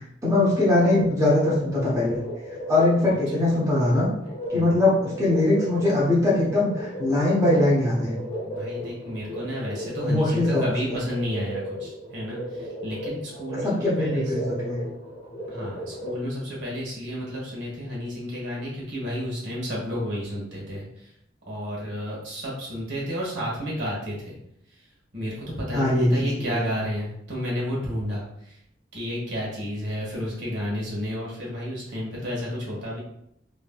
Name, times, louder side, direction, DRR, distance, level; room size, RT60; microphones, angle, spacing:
voice 1, 0.0-2.2 2.7-4.1 4.5-8.2 10.0-10.7 13.6-14.8 25.7-26.6, left 2 dB, 20° right, -6 dB, 0.8 m, -22 dB
sound 1, 0.9-16.2, left 1 dB, 40° left, 0.9 m, -35 dB
voice 2, 4.5-4.9 8.4-14.3 15.5-21.1 21.5-24.4 24.7-28.6 28.9-33.0, equal, 85° right, -5 dB, 1.4 m, -31 dB
3.1 x 2.7 x 2.3 m, 0.76 s
head